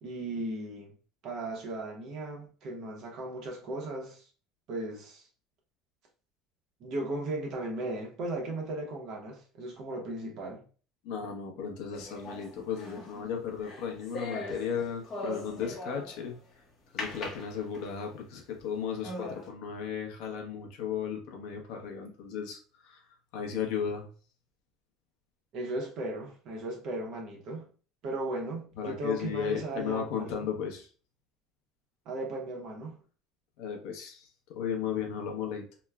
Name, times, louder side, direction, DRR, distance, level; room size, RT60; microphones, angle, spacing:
voice 1, 0.0-0.9 1.2-4.3 4.7-5.3 6.8-10.6 25.5-27.7 28.0-30.5 32.1-33.0, right 2 dB, 45° right, 0.9 m, -36 dB
voice 2, 11.0-16.4 16.9-23.0 23.3-24.1 28.8-30.9 33.6-34.3 34.5-35.7, left 7 dB, 75° left, 0.7 m, -35 dB
sound 1, 11.9-16.3 17.0-18.1 18.6-18.7 19.0-19.5, left 1 dB, 35° left, 0.8 m, -40 dB
3.0 x 2.1 x 2.3 m
cardioid pair, 160°, 0 cm